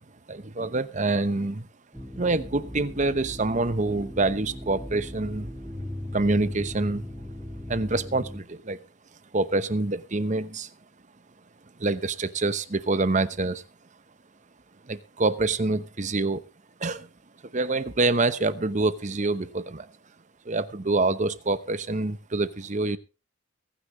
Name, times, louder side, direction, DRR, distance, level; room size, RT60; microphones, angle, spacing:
voice 1, 0.3-1.7 2.2-5.5 6.1-7.1 7.7-8.8 9.3-10.7 11.8-13.6 14.9-16.4 16.8-17.1 17.5-19.9 20.4-23.0, right 2 dB, 35° right, 14 dB, 0.9 m, -26 dB
sound 1, 1.9-8.4, left 1 dB, ahead, 2.0 m, -38 dB
23.5 x 10.0 x 3.1 m, 0.30 s
head